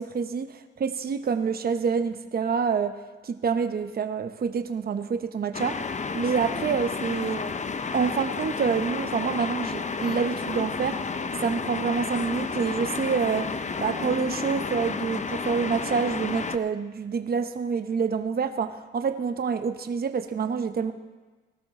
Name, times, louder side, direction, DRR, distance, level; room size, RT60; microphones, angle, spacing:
voice 1, 0.0-3.0 3.2-5.8 6.1-7.4 7.9-20.9, right 6 dB, 45° right, 8 dB, 0.9 m, -27 dB
sound 1, 5.5-16.6, left 5 dB, 35° left, 0.8 m, -31 dB
19.0 x 12.5 x 3.7 m, 1.3 s
supercardioid pair, 60°, 21 cm